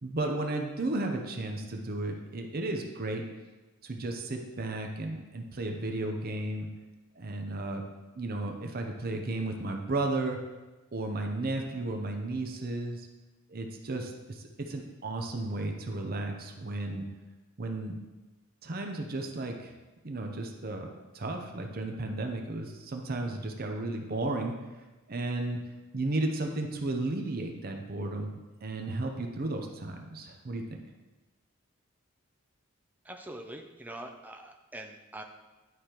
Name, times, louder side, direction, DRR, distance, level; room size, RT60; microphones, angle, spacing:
voice 1, 0.0-3.2 3.8-6.7 7.2-7.8 8.2-10.4 10.9-13.1 13.5-17.1 17.6-17.9 18.6-19.7 20.0-20.9 21.1-24.5 25.1-25.6 25.9-30.8, right 2 dB, 45° right, 3 dB, 0.7 m, -34 dB
voice 2, 33.0-35.2, right 1 dB, 10° right, 3 dB, 0.4 m, -44 dB
11.0 x 4.9 x 3.0 m, 1.2 s
head